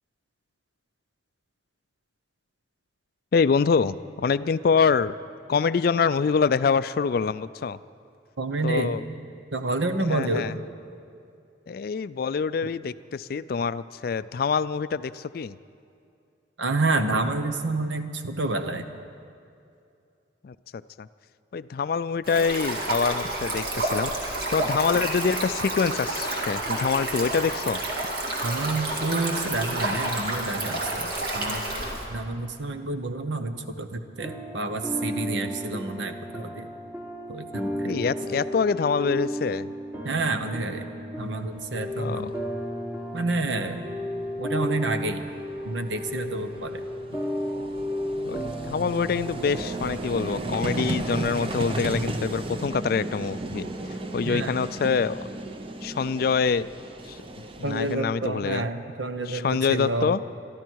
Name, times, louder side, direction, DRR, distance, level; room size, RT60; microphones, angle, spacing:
voice 1, 3.3-5.1 5.5-7.8 8.6-9.0 10.0-10.5 11.7-15.6 20.4-20.5 21.0-21.1 21.5-27.8 37.8-39.7 42.0-42.3 48.3-53.7 54.1-55.3 55.8-56.7 57.1-58.7 59.3-60.2, left 5 dB, 50° left, 15 dB, 0.3 m, -25 dB
voice 2, 8.4-9.0 9.5-10.5 16.6-18.9 28.4-31.7 32.1-36.7 37.3-37.9 40.0-40.8 41.2-42.3 43.1-43.8 44.4-45.2 45.6-46.8 54.3-54.6 57.6-60.1, right 2 dB, 75° right, 8 dB, 1.0 m, -29 dB
Stream, 22.2-32.0, right 2 dB, 55° right, 2.3 m, -29 dB
sound 1, 34.2-51.3, equal, 15° right, 1.4 m, -34 dB
Vehicle, 41.8-41.9 42.1-42.3 44.3-44.4 44.6-58.0, right 2 dB, 30° right, 0.7 m, -34 dB
23.5 x 13.0 x 4.7 m, 2.5 s
head